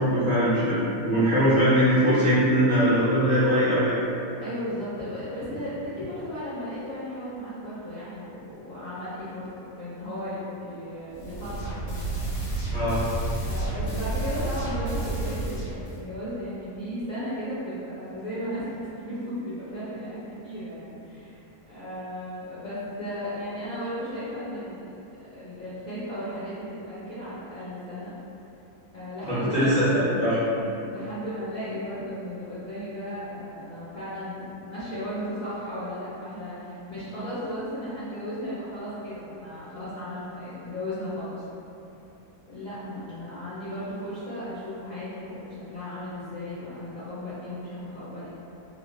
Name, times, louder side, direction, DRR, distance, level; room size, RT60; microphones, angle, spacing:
voice 1, 0.0-4.0 12.7-13.0 29.2-30.4, equal, 40° right, -16 dB, 0.6 m, -21 dB
voice 2, 4.4-12.1 12.4-12.6 13.4-21.4 21.7-24.9 25.3-28.1 28.9-30.1 30.6-41.4 42.5-48.3, equal, 60° left, -14 dB, 0.4 m, -35 dB
sound 1, 11.1-16.0, right 2 dB, 90° left, 1.2 m, -30 dB
2.8 x 2.0 x 2.3 m, 2.8 s
omnidirectional pair, 1.7 m